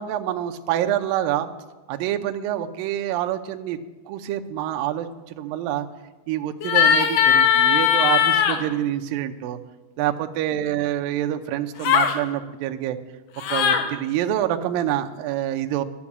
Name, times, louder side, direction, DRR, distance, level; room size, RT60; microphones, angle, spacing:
voice 1, 0.0-1.5 1.9-3.8 4.1-5.1 5.4-5.9 6.3-9.6 10.0-13.0 13.5-15.8, right 11 dB, 85° right, 6 dB, 2.0 m, -26 dB
sound 1, 6.6-8.6 11.8-12.2 13.4-13.8, left 8 dB, 75° left, 2.0 m, -18 dB
13.5 x 10.0 x 7.2 m, 1.2 s
omnidirectional pair, 5.0 m